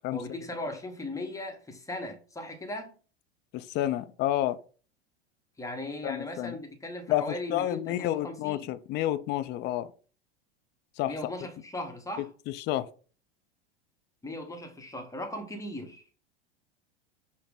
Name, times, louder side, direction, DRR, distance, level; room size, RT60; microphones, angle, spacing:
voice 1, 0.1-2.9 5.6-8.7 11.0-12.3 14.2-16.2, left 1 dB, 10° left, 0.9 m, -38 dB
voice 2, 3.5-4.6 6.0-6.6 7.1-9.9 11.0-11.2 12.2-12.9, left 13 dB, 35° left, 0.4 m, -30 dB
5.7 x 2.0 x 3.6 m
hypercardioid pair, 90°, 31 cm